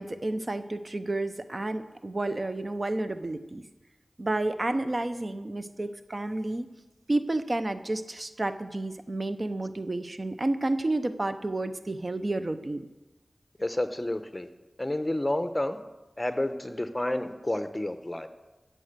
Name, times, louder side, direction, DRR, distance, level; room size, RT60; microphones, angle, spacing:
voice 1, 0.0-3.6 4.2-6.7 7.1-12.8, right 2 dB, 45° right, 10 dB, 0.8 m, -30 dB
voice 2, 13.6-14.5 14.8-15.8 16.2-18.3, left 1 dB, 20° left, 9 dB, 1.0 m, -30 dB
15.0 x 7.7 x 6.8 m, 1.1 s
wide cardioid pair, 60°, 0 cm